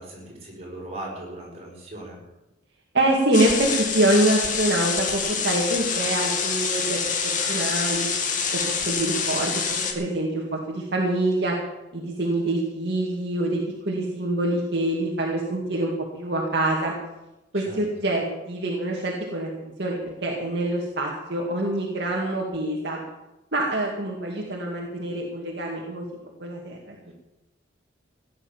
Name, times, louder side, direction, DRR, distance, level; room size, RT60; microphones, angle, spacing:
voice 1, 0.0-2.2 17.5-17.8, right 1 dB, 35° right, -3 dB, 6.4 m, -38 dB
voice 2, 2.9-8.1 8.5-11.5 11.9-13.6 13.9-15.9 16.2-16.9 17.5-23.0 23.5-26.0 26.4-27.1, right 1 dB, 60° right, -2 dB, 2.3 m, -25 dB
sound 1, 3.3-9.9, left 6 dB, 45° left, 2.2 m, -26 dB
16.0 x 10.0 x 7.4 m, 0.98 s
head